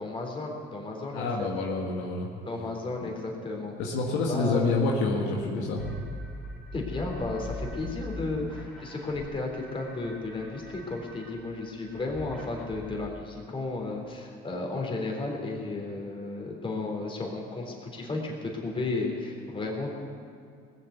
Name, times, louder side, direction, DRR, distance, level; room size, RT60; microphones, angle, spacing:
voice 1, 0.0-1.5 2.5-3.7 4.3-4.8 6.7-19.9, left 3 dB, 25° left, 0 dB, 3.7 m, -33 dB
voice 2, 1.1-2.3 3.8-5.9, left 3 dB, 80° left, -1 dB, 1.9 m, -28 dB
sound 1, 5.8-13.1, left 1 dB, 5° left, 4.3 m, -42 dB
19.0 x 7.6 x 8.2 m, 2.3 s
supercardioid pair, 95°, 19 cm